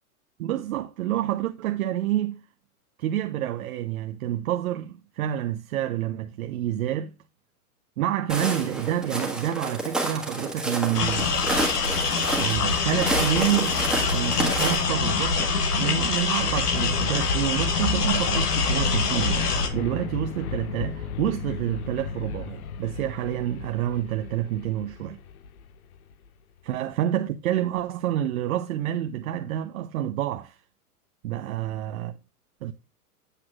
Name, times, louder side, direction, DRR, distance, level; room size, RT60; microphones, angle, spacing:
voice 1, 0.4-2.4 3.0-7.1 8.0-11.4 12.4-13.8 14.1-25.2 26.6-30.6 31.2-32.2 32.6-32.7, right 12 dB, 65° right, 0.7 m, -28 dB
Walk footsteps, 8.3-14.8, right 2 dB, ahead, 1.3 m, -29 dB
sound 1, 10.9-19.7, left 4 dB, 85° left, 1.5 m, -25 dB
sound 2, 16.4-26.3, left 7 dB, 70° left, 0.8 m, -34 dB
8.3 x 5.8 x 2.4 m
hypercardioid pair, 125°, 45 cm